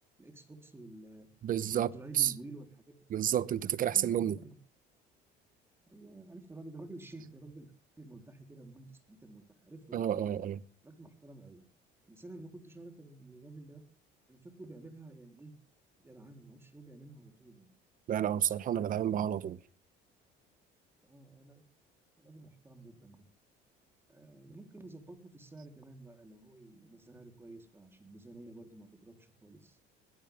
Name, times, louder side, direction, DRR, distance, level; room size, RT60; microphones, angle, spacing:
voice 1, 0.2-1.3 1.6-3.0 3.9-4.6 5.9-7.7 8.0-10.2 10.8-11.6 12.1-13.8 14.3-15.5 16.0-17.7 21.0-21.6 22.2-23.2 24.1-29.8, right 2 dB, 10° right, 3.7 m, -50 dB
voice 2, 1.4-1.9 2.2-2.3 3.1-4.4 9.9-10.6 18.1-19.6, right 10 dB, 45° right, 0.9 m, -30 dB
20.5 x 16.0 x 3.6 m
cardioid pair, 125°, 20 cm